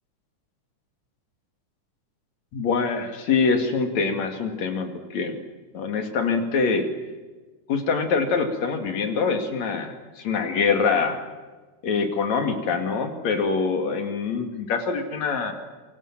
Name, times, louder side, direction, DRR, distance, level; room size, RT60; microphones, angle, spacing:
voice 1, 2.5-5.4 5.7-6.9 7.7-11.2 11.8-15.5, left 5 dB, 60° left, 6 dB, 3.6 m, -24 dB
27.5 x 24.5 x 7.5 m, 1.3 s
omnidirectional pair, 3.5 m